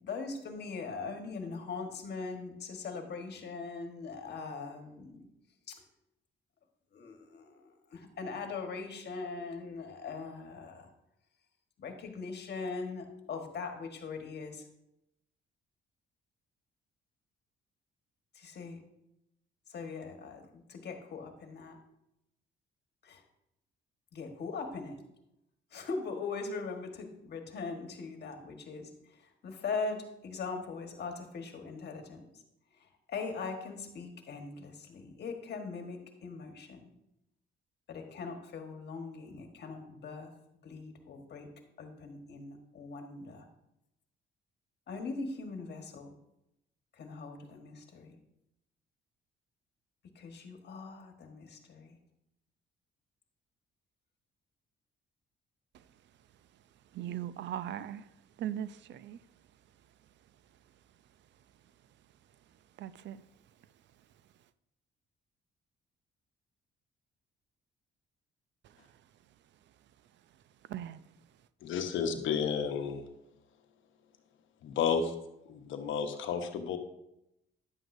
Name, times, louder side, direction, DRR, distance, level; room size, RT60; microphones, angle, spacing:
voice 1, 0.0-5.3 5.7-5.8 6.9-10.9 11.8-14.6 18.3-18.8 19.7-21.8 23.0-23.2 24.1-25.0 25.7-32.2 32.8-36.9 37.9-40.3 40.6-41.5 41.8-43.5 44.9-46.1 47.0-48.2 50.1-52.0, left 4 dB, 55° left, 1.3 m, -41 dB
voice 2, 56.9-58.0 58.4-59.2 62.8-63.2 70.7-71.0, right 11 dB, 65° right, 0.4 m, -38 dB
voice 3, 71.6-73.0 74.6-75.1 75.5-76.8, left 6 dB, 80° left, 0.9 m, -31 dB
10.5 x 7.9 x 2.6 m
cardioid pair, 90°, 20 cm